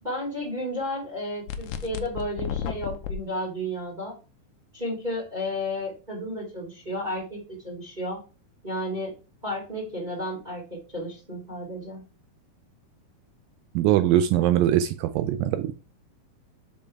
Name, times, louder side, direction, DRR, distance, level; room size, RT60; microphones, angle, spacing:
voice 1, 0.0-4.1 4.7-8.2 8.6-9.1 9.4-12.0, left 1 dB, 15° right, -2 dB, 1.5 m, -32 dB
sound 1, 1.5-3.2, left 8 dB, 80° left, 1.8 m, -32 dB
voice 2, 13.8-15.7, right 12 dB, 80° right, 10 dB, 2.1 m, -22 dB
5.5 x 5.2 x 4.6 m, 0.34 s
omnidirectional pair, 4.4 m